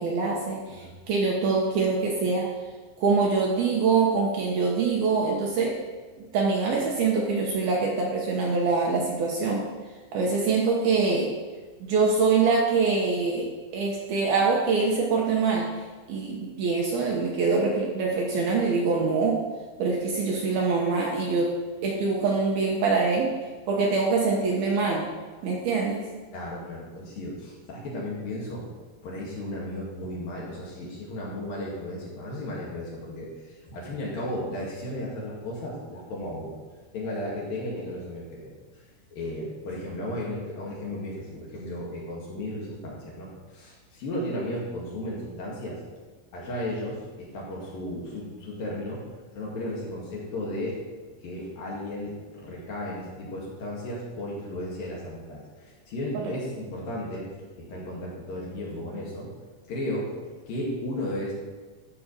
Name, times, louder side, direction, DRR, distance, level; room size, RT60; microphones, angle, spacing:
voice 1, 0.0-2.5 3.0-5.8 6.3-9.6 10.1-11.3 11.8-15.7 16.1-19.4 19.8-21.6 21.8-23.3 23.7-25.1 25.4-26.0 56.3-56.4, right 4 dB, 70° right, -2 dB, 2.6 m, -24 dB
voice 2, 26.3-28.6 29.0-36.5 36.9-38.6 39.1-45.8 46.3-49.0 49.3-50.8 51.2-57.3 57.6-59.3 59.7-60.1 60.5-61.3, left 1 dB, 55° left, -5 dB, 3.6 m, -34 dB
13.0 x 5.1 x 6.6 m, 1.3 s
omnidirectional pair, 5.3 m